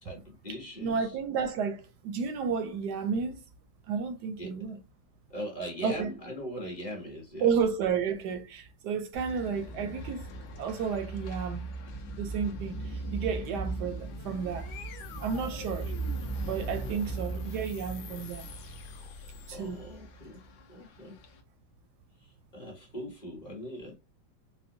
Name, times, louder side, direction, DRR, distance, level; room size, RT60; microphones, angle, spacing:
voice 1, 0.0-1.1 4.4-4.6 5.3-7.5 16.8-17.0 19.1-20.4 20.7-21.2 22.5-24.0, equal, 30° left, 1.0 m, -41 dB
voice 2, 0.8-3.4 3.9-4.8 5.8-6.1 7.4-10.3 10.6-11.6 12.2-14.7 15.2-15.9 16.4-18.5 19.5-19.8, right 6 dB, 75° right, 1.0 m, -32 dB
sound 1, 9.1-21.4, right 3 dB, 65° left, 1.0 m, -39 dB
sound 2, 13.7-20.1, left 4 dB, 85° left, 1.4 m, -46 dB
4.4 x 2.1 x 2.6 m
omnidirectional pair, 2.1 m